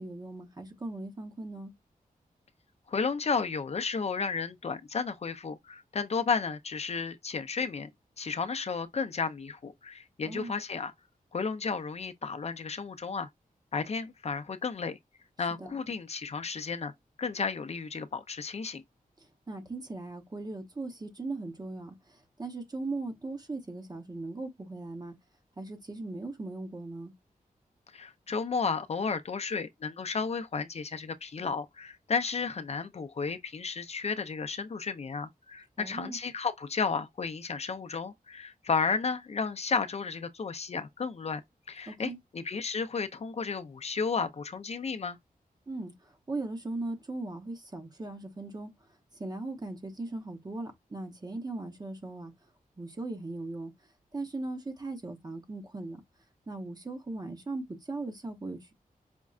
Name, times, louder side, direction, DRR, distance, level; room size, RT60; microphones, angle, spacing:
voice 1, 0.0-1.8 10.2-10.6 15.5-15.8 19.2-25.1 25.6-27.1 35.8-36.2 41.9-42.2 45.7-48.7 49.1-52.3 52.8-53.7 54.1-56.0 56.5-58.7, right 2 dB, 25° right, 0.8 m, -38 dB
voice 2, 2.9-7.9 8.2-10.9 11.3-13.3 13.7-15.0 15.4-16.9 17.2-18.8 27.9-41.4 41.7-45.2, left 5 dB, 45° left, 0.5 m, -33 dB
5.1 x 2.2 x 2.4 m
wide cardioid pair, 110°, 15 cm